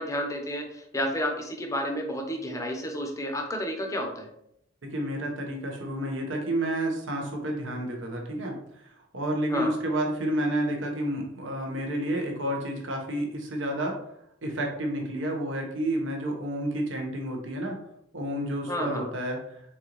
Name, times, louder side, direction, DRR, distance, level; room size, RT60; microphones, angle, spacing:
voice 1, 0.0-4.3 9.5-9.7 18.7-19.0, equal, 15° left, 2 dB, 0.7 m, -31 dB
voice 2, 4.8-14.0 14.4-17.8 18.1-19.4, right 1 dB, 75° right, 1 dB, 1.1 m, -30 dB
4.5 x 3.8 x 3.0 m, 0.76 s
head